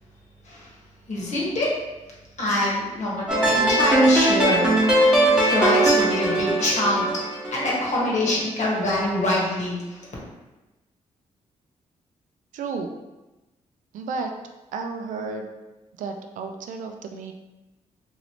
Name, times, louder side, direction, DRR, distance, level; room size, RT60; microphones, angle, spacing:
voice 1, 0.4-0.8 1.1-1.7 2.4-4.7 5.3-7.1 7.5-10.1, left 1 dB, 65° left, -4 dB, 1.2 m, -24 dB
sound 1, 3.3-8.4, right 1 dB, 5° right, 0.9 m, -20 dB
voice 2, 12.5-12.9 13.9-14.3 14.7-15.5 16.0-17.3, right 4 dB, 85° right, 5 dB, 0.4 m, -32 dB
3.1 x 2.7 x 2.9 m, 1.1 s
cardioid pair, 80°, 13 cm